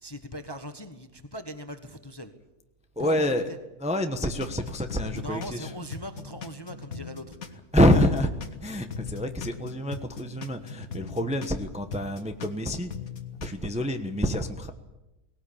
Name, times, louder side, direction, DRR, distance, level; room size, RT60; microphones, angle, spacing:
voice 1, 0.0-2.3 3.0-3.6 5.0-7.4, equal, 15° left, 8 dB, 1.1 m, -40 dB
voice 2, 3.0-3.5 3.8-5.7 7.7-8.3 8.6-12.9 13.4-14.7, equal, 5° right, 6 dB, 1.0 m, -26 dB
sound 1, 4.4-7.6 7.9-11.6 11.9-13.5, left 6 dB, 60° left, 2.0 m, -40 dB
19.5 x 18.0 x 8.7 m, 0.98 s
omnidirectional pair, 1.7 m